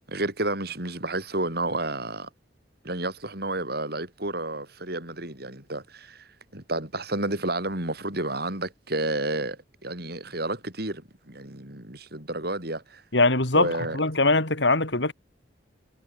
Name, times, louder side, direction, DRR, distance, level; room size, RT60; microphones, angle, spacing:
voice 1, 0.1-2.3 2.8-13.0 13.5-14.0, right 2 dB, 60° right, 8.0 m, -31 dB
voice 2, 13.1-15.1, left 2 dB, 80° left, 4.2 m, -22 dB
head